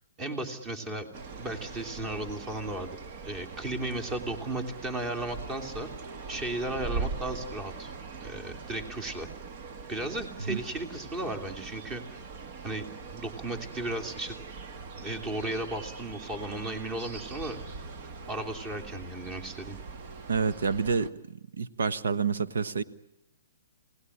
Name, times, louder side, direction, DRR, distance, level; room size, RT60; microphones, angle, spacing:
voice 1, 0.2-1.1 1.4-3.0 3.2-5.9 6.3-7.9 8.2-9.3 9.9-12.2 12.6-12.9 13.1-14.4 15.0-17.6 18.0-19.8, right 1 dB, 20° right, 7 dB, 3.0 m, -35 dB
sound 1, 1.1-21.1, right 4 dB, 45° right, 1.7 m, -42 dB
voice 2, 20.3-21.1 21.6-22.8, right 5 dB, 80° right, 12 dB, 1.2 m, -28 dB
28.0 x 19.0 x 10.0 m, 0.83 s
hypercardioid pair, 145°, 0 cm